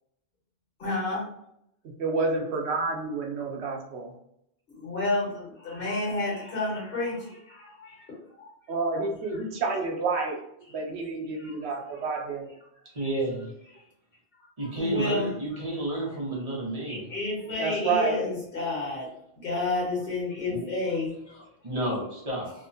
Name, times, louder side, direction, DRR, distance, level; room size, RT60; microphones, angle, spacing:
voice 1, 0.8-1.3 4.7-8.5 11.4-11.5 11.9-12.0 14.6-15.3 15.9-16.0 16.9-19.1 19.4-21.5, left 2 dB, 60° left, -5 dB, 1.4 m, -31 dB
voice 2, 1.8-4.1 8.7-10.4 10.7-12.5 17.6-18.2, right 4 dB, 85° right, 1 dB, 0.9 m, -29 dB
voice 3, 12.9-13.8 14.6-17.1 20.4-20.6 21.6-22.5, right 1 dB, 40° right, -4 dB, 0.8 m, -31 dB
2.9 x 2.1 x 2.6 m, 0.77 s
omnidirectional pair, 1.1 m